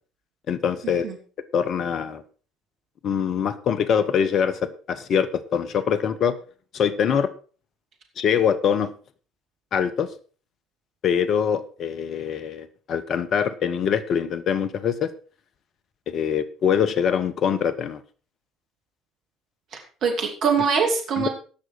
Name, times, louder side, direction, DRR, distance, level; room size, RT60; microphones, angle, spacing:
voice 1, 0.5-1.1 1.5-2.2 3.0-4.6 4.9-6.4 6.7-7.3 8.2-8.9 9.7-10.1 11.0-15.1 16.1-18.0 21.2-21.3, left 7 dB, 50° left, 15 dB, 1.2 m, -23 dB
voice 2, 19.7-21.3, right 5 dB, 55° right, 3 dB, 2.6 m, -23 dB
17.0 x 6.4 x 4.8 m, 0.39 s
hypercardioid pair, 60°, 0 cm